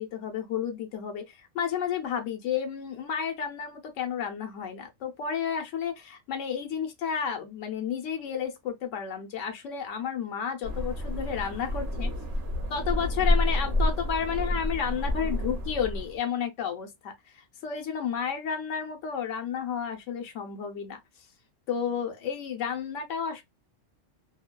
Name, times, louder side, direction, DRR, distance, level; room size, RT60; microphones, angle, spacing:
voice 1, 0.0-12.1 12.7-21.0 21.7-23.4, left 7 dB, 85° left, 1.0 m, -32 dB
sound 1, 10.6-16.2, left 1 dB, 55° right, 1.0 m, -29 dB
2.6 x 2.2 x 2.2 m
omnidirectional pair, 1.3 m